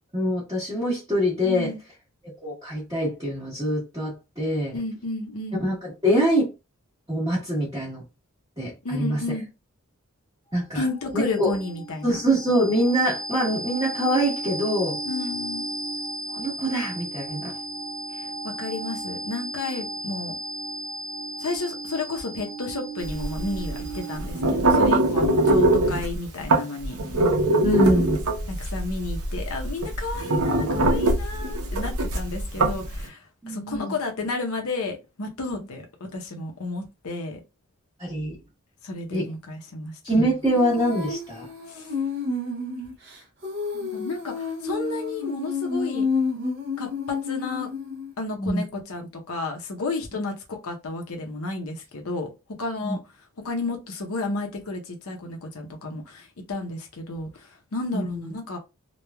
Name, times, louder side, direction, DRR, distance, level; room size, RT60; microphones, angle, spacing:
voice 1, 0.1-1.7 2.4-4.7 5.6-6.5 7.1-8.0 8.6-9.2 10.5-10.8 11.1-11.5 12.0-15.0 16.3-17.5 27.6-28.2 33.4-33.9 35.6-35.7 38.0-38.3 39.1-39.3 40.0-41.5 48.3-48.6 52.8-53.0 57.9-58.3, equal, 15° right, 1.0 m, -24 dB
voice 2, 1.4-1.8 4.7-5.7 8.8-9.5 10.7-12.2 15.0-15.7 18.1-20.4 21.4-27.0 28.5-37.4 38.8-39.9 41.7-41.9 43.8-46.1 46.8-47.7 48.2-52.3 52.6-53.0 53.4-58.6, left 3 dB, 85° left, 0.7 m, -32 dB
sound 1, 10.6-24.4, right 2 dB, 30° left, 0.9 m, -35 dB
sound 2, 23.1-33.0, right 2 dB, 85° right, 0.7 m, -22 dB
Female singing, 40.4-48.1, left 4 dB, 50° right, 0.6 m, -30 dB
3.0 x 2.3 x 2.2 m
head